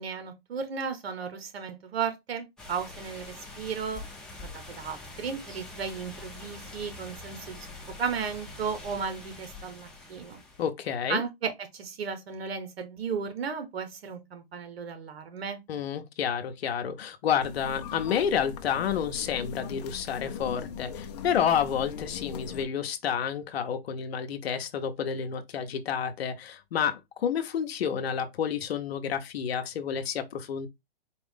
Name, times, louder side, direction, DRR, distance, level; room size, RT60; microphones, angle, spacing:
voice 1, 0.0-4.0 4.4-7.7 8.0-10.4 11.1-15.6, right 6 dB, 80° right, 1.1 m, -34 dB
sound 1, 2.6-10.7, left 2 dB, ahead, 0.8 m, -45 dB
voice 2, 10.6-11.2 15.7-30.7, left 8 dB, 80° left, 0.7 m, -30 dB
sound 2, 17.4-22.6, left 8 dB, 45° left, 0.6 m, -40 dB
4.3 x 2.4 x 3.5 m
hypercardioid pair, 145°, 30 cm